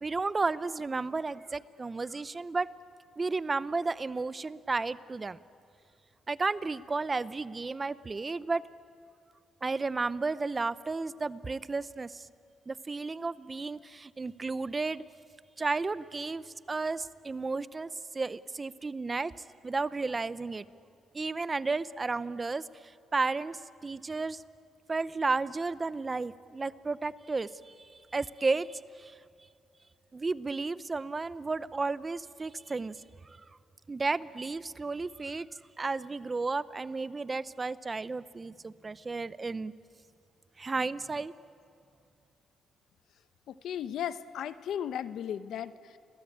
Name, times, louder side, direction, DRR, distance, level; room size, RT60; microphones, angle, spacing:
voice 1, 0.0-2.7 3.2-5.4 6.3-8.6 9.6-12.3 12.7-15.0 15.6-19.3 19.6-20.6 21.1-24.4 24.9-29.2 30.1-33.0 33.9-39.7 40.6-41.3, right 3 dB, 25° right, 16 dB, 0.7 m, -33 dB
voice 2, 43.5-46.0, left 9 dB, 75° left, 13 dB, 1.0 m, -36 dB
29.5 x 22.5 x 8.7 m, 2.5 s
cardioid pair, 90°, 0 cm